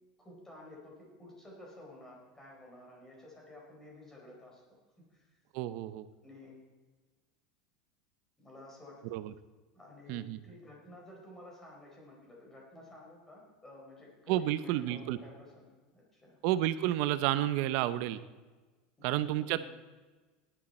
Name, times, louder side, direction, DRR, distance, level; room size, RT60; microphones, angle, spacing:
voice 1, 0.2-4.6 5.0-5.4 6.2-6.6 8.4-9.2 9.7-16.4 19.0-19.7, left 1 dB, 10° left, -2 dB, 4.6 m, -53 dB
voice 2, 5.5-6.1 9.0-9.3 10.1-10.4 14.3-15.2 16.4-18.2 19.0-19.7, right 13 dB, 60° right, 13 dB, 0.8 m, -31 dB
18.5 x 11.5 x 4.3 m, 1.3 s
supercardioid pair, 145°, 3 cm